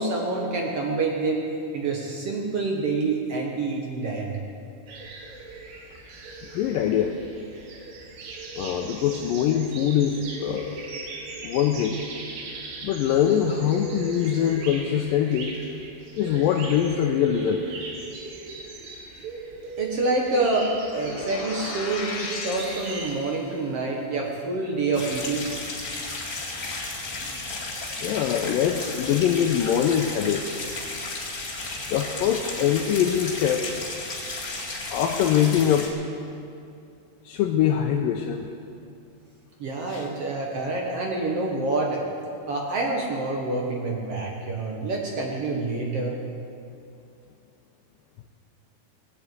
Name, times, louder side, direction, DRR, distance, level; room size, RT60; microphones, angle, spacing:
voice 1, 0.0-4.3 19.8-25.5 39.6-42.0 42.5-46.2, right 3 dB, 60° right, 0 dB, 1.6 m, -27 dB
sound 1, 4.9-23.1, right 3 dB, 80° right, 3.7 m, -38 dB
voice 2, 6.5-7.2 8.6-10.8 11.4-12.0 12.8-15.6 16.2-17.6 28.0-30.6 31.9-33.8 34.9-35.9 37.3-38.5 39.9-40.1, left 9 dB, 80° left, 3 dB, 2.1 m, -23 dB
sound 2, 20.8-23.7, left 4 dB, 60° left, 2.8 m, -36 dB
sound 3, 24.9-35.9, left 2 dB, 25° left, 1.5 m, -33 dB
19.0 x 8.4 x 8.3 m, 2.5 s
omnidirectional pair, 4.6 m